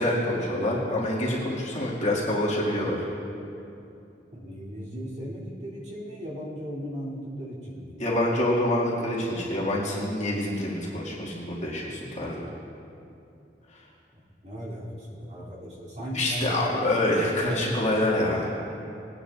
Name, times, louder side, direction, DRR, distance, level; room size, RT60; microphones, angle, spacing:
voice 1, 0.0-3.0 8.0-12.4 16.1-18.4, left 1 dB, 40° left, -6 dB, 2.1 m, -26 dB
voice 2, 4.3-7.9 14.4-16.6 17.4-18.0, equal, 40° right, -7 dB, 3.0 m, -37 dB
21.0 x 9.9 x 2.5 m, 2.7 s
head